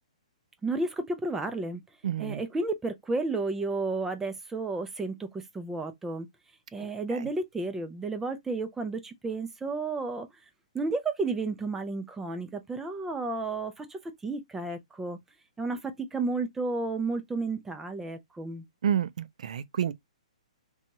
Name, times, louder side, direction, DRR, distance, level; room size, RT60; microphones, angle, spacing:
voice 1, 0.6-1.8 2.2-6.3 6.7-10.3 10.7-15.2 15.6-18.6, right 3 dB, 10° right, 0.4 m, -32 dB
voice 2, 2.0-2.4 7.1-7.2 18.8-19.9, right 9 dB, 70° right, 0.4 m, -29 dB
2.8 x 2.3 x 2.6 m
hypercardioid pair, 145°, 4 cm